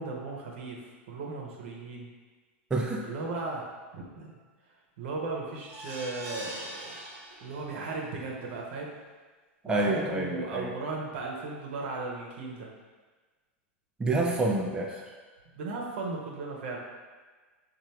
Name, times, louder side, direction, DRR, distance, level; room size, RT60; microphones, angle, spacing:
voice 1, 0.0-2.1 3.0-4.4 5.0-6.9 7.4-8.9 9.6-12.7 15.5-16.8, right 3 dB, 65° right, -1 dB, 0.9 m, -36 dB
voice 2, 2.7-3.1 9.6-10.7 14.0-15.1, right 2 dB, 15° right, -1 dB, 0.5 m, -28 dB
sound 1, 5.7-7.9 8.4-8.5 8.9-9.0, right 1 dB, 35° right, 1.0 m, -42 dB
5.3 x 2.5 x 3.1 m, 1.4 s
hypercardioid pair, 100°, 7 cm